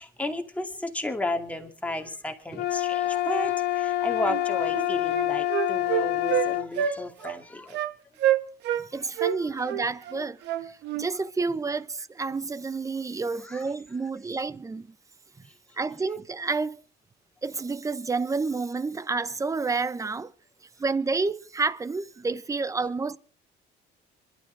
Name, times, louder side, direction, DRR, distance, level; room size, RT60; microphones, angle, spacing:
voice 1, 0.0-7.8 9.0-9.1 13.4-13.6, left 1 dB, 10° left, 2.5 m, -33 dB
sound 1, 2.5-6.7, left 13 dB, 65° left, 1.0 m, -27 dB
Wind instrument woodwind instrument, 4.3-4.4 4.7-6.5 6.8-7.0 7.2-7.4 7.7-7.9 8.2-8.8 9.2-11.1, right 10 dB, 75° right, 1.5 m, -27 dB
voice 2, 8.8-14.9 15.4-15.5 15.8-16.8 17.4-20.3 20.8-23.2, right 4 dB, 20° right, 0.8 m, -30 dB
26.5 x 12.5 x 3.5 m
cardioid pair, 125°, 18 cm